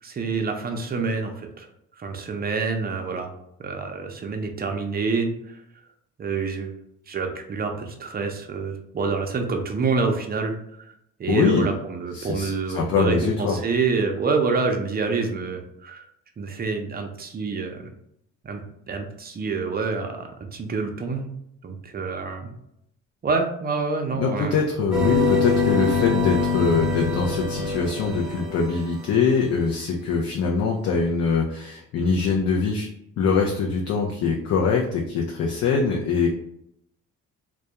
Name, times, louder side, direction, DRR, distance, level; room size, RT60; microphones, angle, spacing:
voice 1, 0.0-1.7 2.0-3.3 3.6-5.6 6.2-6.7 7.1-10.5 10.9-11.0 11.2-16.1 16.4-17.9 18.4-18.6 18.9-21.3 21.6-22.5 23.2-24.6, right 4 dB, 30° right, 4 dB, 0.5 m, -27 dB
voice 2, 11.3-11.7 12.1-13.6 24.2-32.9 33.2-36.3, left 5 dB, 55° left, 0 dB, 0.4 m, -23 dB
sound 1, 24.9-29.2, left 4 dB, ahead, 0.8 m, -24 dB
2.2 x 2.1 x 2.8 m, 0.76 s
cardioid pair, 90°, 30 cm